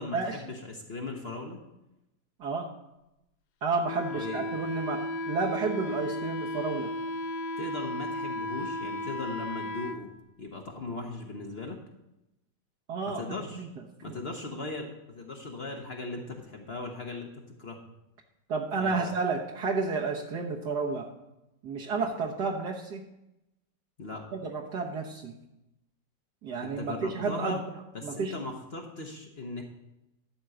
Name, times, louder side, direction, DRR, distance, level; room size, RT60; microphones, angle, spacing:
voice 1, 0.0-1.6 4.1-4.4 7.6-10.1 10.4-11.8 13.2-13.7 14.0-17.3 17.6-17.8 18.8-19.1 24.0-24.2 26.6-27.6 27.9-29.6, left 3 dB, 40° left, 1 dB, 1.1 m, -38 dB
voice 2, 3.6-6.9 12.9-13.7 14.1-14.2 18.5-21.1 21.6-23.0 24.3-25.3 26.4-27.6 28.0-28.3, right 4 dB, 65° right, -1 dB, 1.6 m, -31 dB
Wind instrument woodwind instrument, 3.8-10.0, left 1 dB, 70° left, 1.1 m, -34 dB
12.0 x 4.5 x 7.8 m, 0.90 s
omnidirectional pair, 1.9 m